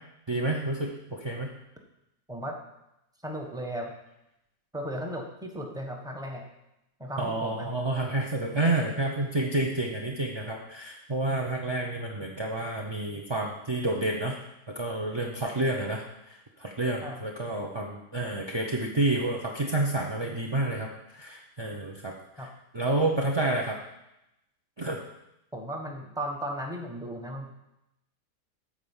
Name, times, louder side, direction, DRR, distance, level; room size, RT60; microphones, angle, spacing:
voice 1, 0.3-1.5 7.2-14.4 14.7-22.5 22.7-23.8 24.8-25.0, right 2 dB, 30° right, 1 dB, 0.5 m, -29 dB
voice 2, 3.2-3.9 4.7-6.4 7.0-7.7 17.0-17.2 22.4-22.5 25.5-27.5, equal, 5° right, 2 dB, 1.0 m, -36 dB
9.1 x 5.0 x 7.2 m, 0.87 s
omnidirectional pair, 1.7 m